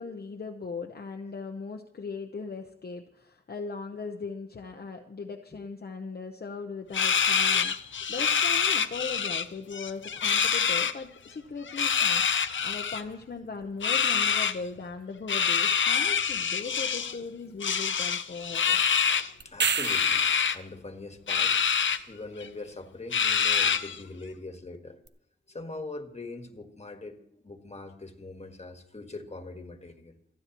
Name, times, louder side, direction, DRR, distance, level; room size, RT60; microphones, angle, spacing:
voice 1, 0.0-18.8, left 4 dB, 55° left, 2 dB, 0.9 m, -39 dB
sound 1, 6.9-9.4 9.7-10.9 11.7-13.0 13.8-14.6 15.3-17.2 17.6-19.3 19.8-20.6 21.3-22.0 22.4-22.5 23.1-24.0, left 7 dB, 80° left, 0.6 m, -26 dB
sound 2, 19.4-20.4 25.1-25.2, right 5 dB, 65° right, 0.8 m, -28 dB
voice 2, 19.5-21.6 22.1-25.0 25.5-30.2, left 2 dB, 35° left, 5 dB, 1.6 m, -42 dB
28.0 x 9.7 x 3.0 m, 0.74 s
wide cardioid pair, 95°, 20 cm